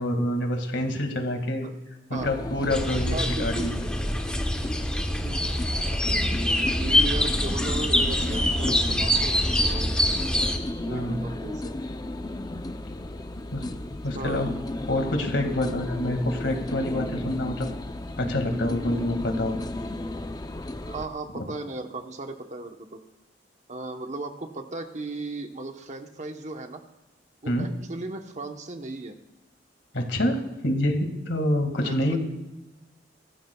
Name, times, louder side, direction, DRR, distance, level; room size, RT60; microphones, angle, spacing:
voice 1, 0.0-1.7 2.1-3.7 8.6-8.7 10.9-11.2 13.5-13.7 14.0-14.5 14.9-17.7 18.2-19.6 21.3-21.4 27.5-27.7 29.9-32.2, left 1 dB, 85° left, 4 dB, 2.0 m, -27 dB
sound 1, 2.2-21.1, left 1 dB, 20° left, 0.6 m, -34 dB
sound 2, 2.7-10.6, left 1 dB, 5° left, 1.2 m, -25 dB
voice 2, 3.1-3.7 5.2-5.6 6.8-9.9 10.8-11.7 14.1-14.4 20.9-23.0 23.7-26.8 27.4-29.2 31.8-32.2, right 2 dB, 40° right, 5 dB, 1.0 m, -36 dB
22.5 x 15.0 x 2.3 m, 1.1 s
head